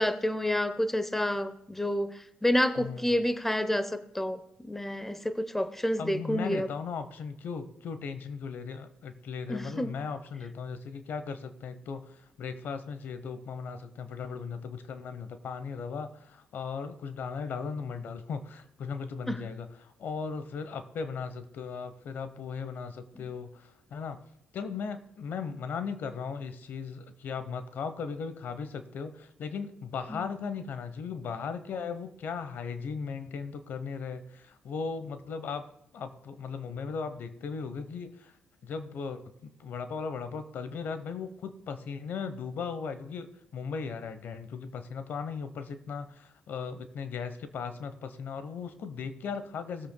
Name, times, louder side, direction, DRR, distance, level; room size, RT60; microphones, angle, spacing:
voice 1, 0.0-2.1 2.4-6.7 9.5-9.9 19.3-19.4 30.1-30.2, left 1 dB, 10° left, 12 dB, 0.8 m, -29 dB
voice 2, 6.0-24.2 24.5-35.6 35.9-38.3 38.6-49.9, left 5 dB, 70° left, 11 dB, 0.9 m, -37 dB
19.0 x 8.0 x 2.3 m, 0.79 s
cardioid pair, 70°, 3 cm